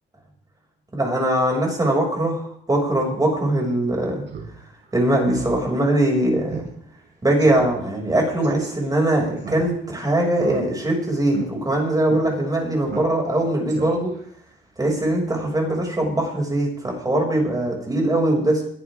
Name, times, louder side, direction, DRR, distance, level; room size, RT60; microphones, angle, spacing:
voice 1, 0.9-4.2 4.9-6.7 7.2-14.1 14.8-18.6, right 1 dB, 20° right, 0 dB, 6.6 m, -21 dB
Speech synthesizer, 4.3-4.5 4.9-5.0 5.3-5.6 5.9-6.0 6.5-6.7 7.0-7.1 7.4-7.7 8.4-8.7 9.4-10.0 10.3-10.9 11.3-11.5 12.1-12.2 12.9-13.4 13.7-14.2, right 6 dB, 60° right, 5.5 m, -34 dB
22.0 x 12.0 x 3.8 m, 0.62 s
cardioid pair, 90°, 20 cm